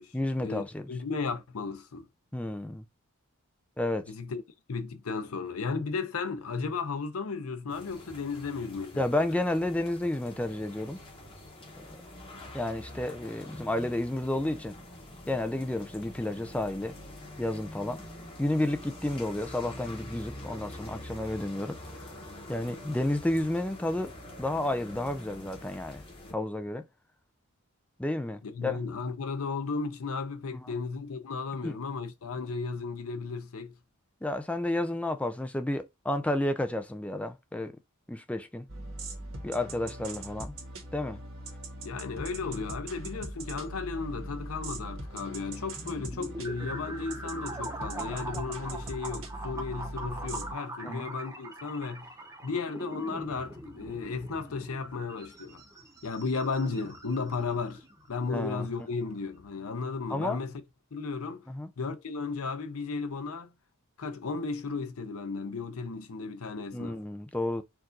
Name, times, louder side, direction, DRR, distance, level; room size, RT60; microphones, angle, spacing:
voice 1, 0.1-0.9 2.3-2.8 3.8-4.1 9.0-11.0 11.8-12.0 12.5-14.8 15.3-16.9 17.4-18.0 18.4-21.8 22.5-24.1 24.4-26.0 26.3-26.8 28.0-28.8 30.5-30.7 31.6-31.8 34.2-37.8 38.1-38.7 39.4-40.6 40.9-41.2 50.8-51.1 58.3-58.7 60.1-60.4 61.5-61.7 66.7-67.6, left 1 dB, 5° left, 0.4 m, -31 dB
voice 2, 0.9-2.1 4.1-4.4 4.7-9.4 28.4-33.8 41.8-52.1 52.4-55.6 56.0-60.6 60.9-61.4 61.8-63.5 64.0-67.0, left 4 dB, 80° left, 0.6 m, -34 dB
sound 1, 7.7-26.3, left 1 dB, 25° left, 1.2 m, -46 dB
sound 2, 38.7-50.5, right 2 dB, 70° right, 1.3 m, -41 dB
sound 3, 45.5-59.7, right 2 dB, 15° right, 0.8 m, -43 dB
4.6 x 2.5 x 3.8 m
head